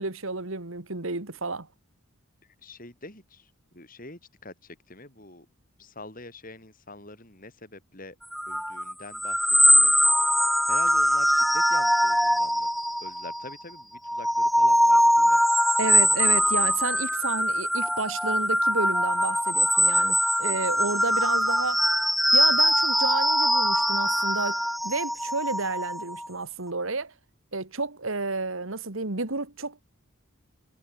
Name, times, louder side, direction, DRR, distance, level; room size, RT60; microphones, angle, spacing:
voice 1, 0.0-1.7 15.8-21.8 22.3-27.1 27.5-29.8, right 3 dB, 65° right, 1.9 m, -31 dB
voice 2, 2.6-5.5 5.8-8.2 8.5-9.9 10.7-12.7 13.0-15.4, left 2 dB, 40° left, 4.7 m, -45 dB
sound 1, 8.3-13.5 14.0-26.3, equal, ahead, 0.3 m, -22 dB
head